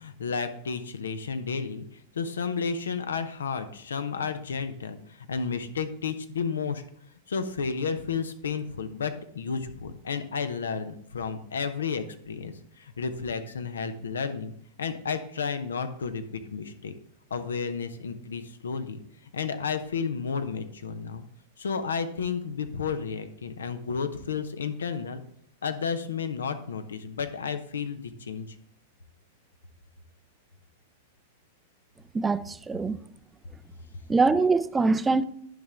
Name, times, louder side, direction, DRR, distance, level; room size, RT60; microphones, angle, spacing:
voice 1, 0.0-6.8 7.3-14.5 14.8-16.9 17.3-19.0 19.3-21.2 21.6-25.2 25.6-28.5, left 5 dB, 80° left, 0.7 m, -32 dB
voice 2, 32.1-33.0 34.1-35.2, right 3 dB, 15° right, 0.4 m, -23 dB
10.5 x 5.2 x 3.5 m
hypercardioid pair, 105°, 0 cm